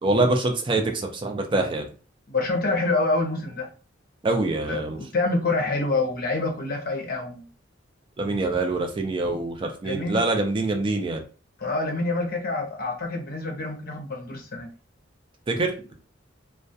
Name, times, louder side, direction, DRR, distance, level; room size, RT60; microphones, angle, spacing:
voice 1, 0.0-1.9 4.2-5.0 8.2-11.2 15.5-15.7, right 2 dB, 25° right, 4 dB, 0.3 m, -25 dB
voice 2, 2.3-3.7 4.7-7.4 9.8-10.2 11.6-14.7, left 3 dB, 50° left, 2 dB, 0.6 m, -26 dB
2.2 x 2.1 x 2.6 m, 0.37 s
head